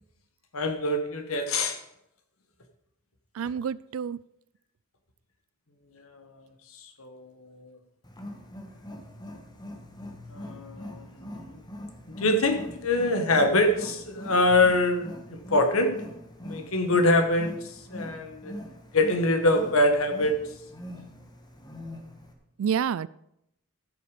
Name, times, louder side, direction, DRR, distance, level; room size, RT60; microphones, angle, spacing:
voice 1, 0.5-1.8 6.0-6.5 6.7-7.8 10.3-11.6 12.1-15.9 16.4-18.5 18.9-20.4, left 2 dB, 70° left, 6 dB, 1.6 m, -25 dB
voice 2, 3.4-4.2 22.6-23.1, right 7 dB, 65° right, 20 dB, 0.3 m, -28 dB
Wild animals, 8.0-22.3, left 1 dB, 20° left, 1.5 m, -43 dB
14.5 x 6.7 x 5.1 m, 0.79 s
head